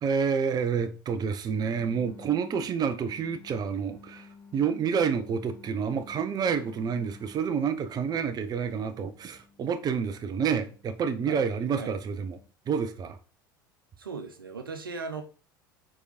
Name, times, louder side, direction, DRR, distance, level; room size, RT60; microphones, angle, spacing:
voice 1, 0.0-12.4 12.7-13.2, right 6 dB, 35° right, 1.1 m, -29 dB
sound 1, 1.7-12.5, left 4 dB, 25° left, 2.7 m, -53 dB
voice 2, 14.0-15.2, right 4 dB, 80° right, 1.1 m, -37 dB
7.0 x 5.1 x 4.3 m
figure-of-eight pair, 70°, 12 cm